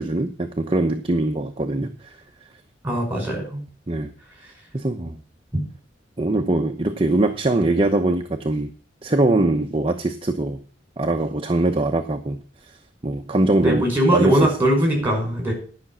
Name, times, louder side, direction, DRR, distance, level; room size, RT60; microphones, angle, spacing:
voice 1, 0.0-1.9 3.9-4.1 4.7-5.2 6.2-8.7 9.0-10.6 11.0-12.4 13.0-14.5, right 2 dB, 30° right, 5 dB, 0.8 m, -22 dB
voice 2, 2.8-3.6 13.6-15.5, right 1 dB, 10° right, 1 dB, 5.3 m, -20 dB
11.0 x 6.0 x 7.3 m, 0.40 s
head